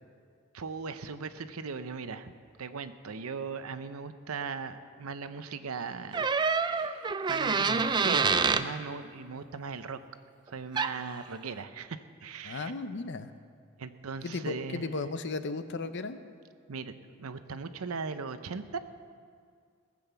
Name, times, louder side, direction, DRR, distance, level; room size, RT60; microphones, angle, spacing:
voice 1, 0.5-2.3 2.6-6.3 6.7-10.0 10.5-12.7 13.8-14.9 16.7-18.8, right 5 dB, 90° right, 11 dB, 0.7 m, -39 dB
sound 1, 6.1-8.7 10.8-11.0, right 5 dB, 20° right, 0.4 m, -26 dB
voice 2, 12.4-13.3 14.2-16.2, left 3 dB, 55° left, 11 dB, 0.7 m, -35 dB
18.0 x 7.8 x 6.9 m, 2.1 s
head